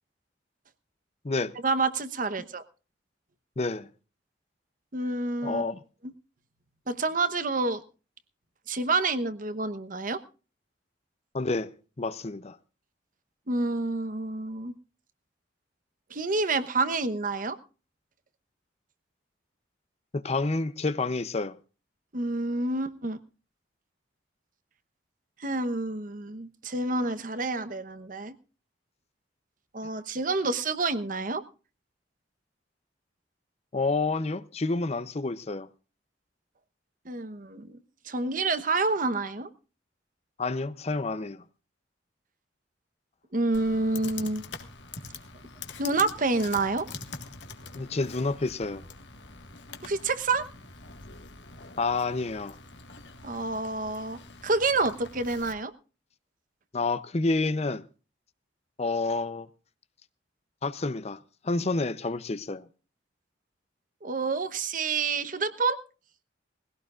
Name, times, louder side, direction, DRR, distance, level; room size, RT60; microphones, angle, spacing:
voice 1, 1.6-2.6 4.9-5.7 6.9-7.8 8.7-10.2 13.5-14.7 16.1-17.6 22.1-23.2 25.4-28.3 29.7-31.4 37.0-37.8 38.0-39.5 43.3-44.4 45.8-46.9 49.8-50.4 53.2-55.7 64.0-65.8, right 3 dB, 45° right, 1.0 m, -28 dB
voice 2, 3.6-3.9 5.4-5.8 11.3-11.7 12.0-12.6 20.1-21.6 33.7-35.7 40.4-41.4 47.7-48.8 51.8-52.6 56.7-57.8 58.8-59.5 60.6-62.7, left 3 dB, 35° left, 0.6 m, -29 dB
Computer keyboard, 43.5-55.5, left 4 dB, 75° left, 1.7 m, -44 dB
20.5 x 16.5 x 2.5 m
head